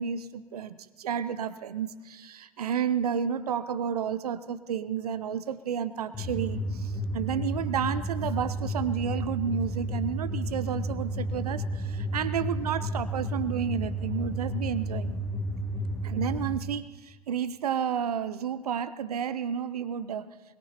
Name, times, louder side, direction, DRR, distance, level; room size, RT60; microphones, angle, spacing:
voice 1, 0.0-15.2 16.0-20.3, right 8 dB, 80° right, 15 dB, 0.8 m, -31 dB
sound 1, 6.1-16.6, equal, 15° left, 1.9 m, -32 dB
22.0 x 21.5 x 2.9 m, 1.4 s
hypercardioid pair, 80°, 19 cm